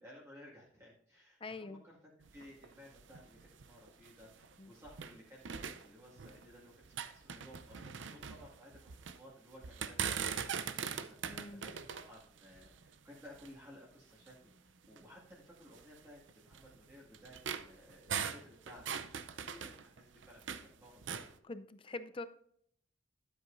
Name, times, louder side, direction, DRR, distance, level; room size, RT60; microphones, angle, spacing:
voice 1, 0.0-2.0 2.3-21.3, equal, 15° right, -6 dB, 2.0 m, -57 dB
voice 2, 1.4-1.8 4.6-4.7 11.3-11.6 21.4-22.3, left 3 dB, 25° left, 11 dB, 0.5 m, -44 dB
sound 1, 2.2-5.2 5.5-6.5 6.8-9.2 9.6-13.6 14.3-14.4 14.8-15.0 15.7-20.7 21.0-21.3, right 7 dB, 70° right, 0.6 m, -41 dB
12.5 x 8.2 x 2.6 m, 0.65 s
head